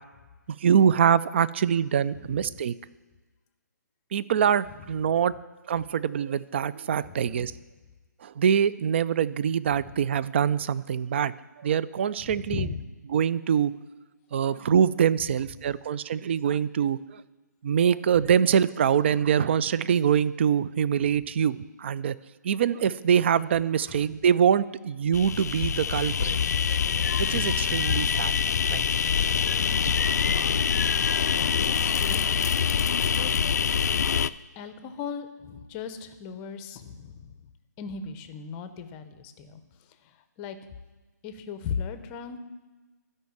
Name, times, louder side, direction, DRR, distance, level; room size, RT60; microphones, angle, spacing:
voice 1, 0.6-2.7 4.1-5.3 5.7-7.5 8.2-12.7 13.1-13.7 14.3-17.2 17.6-22.2 22.4-26.4 27.2-28.8, right 8 dB, 40° right, 18 dB, 0.3 m, -24 dB
voice 2, 2.1-2.6 5.0-5.1 7.1-7.5 9.8-9.9 12.2-12.8 14.7-14.8 15.3-15.4 23.9-24.2 27.9-28.1 30.4-33.3 34.6-37.4 37.8-40.6 41.2-42.4, left 6 dB, 20° left, 10 dB, 0.6 m, -38 dB
sound 1, 25.1-34.3, left 7 dB, 60° left, 0.4 m, -25 dB
12.5 x 5.4 x 7.1 m, 1.3 s
hypercardioid pair, 150°, 10 cm